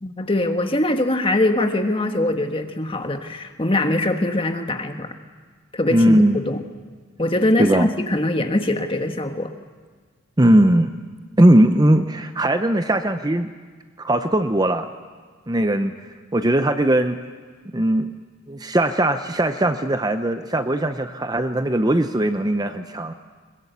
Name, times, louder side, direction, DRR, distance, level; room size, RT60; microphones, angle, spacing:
voice 1, 0.0-5.1 5.7-6.6 7.2-9.5, left 1 dB, 25° left, 5 dB, 1.4 m, -22 dB
voice 2, 5.9-6.4 7.6-7.9 10.4-10.9 11.4-13.5 14.0-14.9 15.5-15.9 16.3-17.2 17.7-18.1 18.5-23.1, right 1 dB, 20° right, 9 dB, 0.7 m, -19 dB
21.5 x 21.0 x 8.1 m, 1.5 s
head